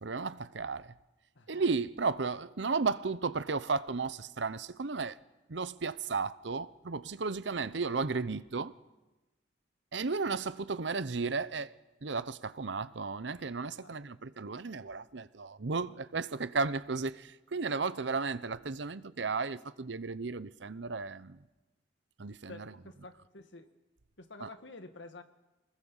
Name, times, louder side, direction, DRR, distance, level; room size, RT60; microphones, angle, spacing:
voice 1, 0.0-0.9 1.5-5.2 5.5-8.7 9.9-11.7 12.0-21.4 22.2-22.7 24.4-24.5, right 4 dB, 75° right, 0.8 m, -34 dB
voice 2, 17.9-18.3 22.5-23.7 24.2-25.2, left 2 dB, 80° left, 1.9 m, -50 dB
25.0 x 20.0 x 7.3 m
head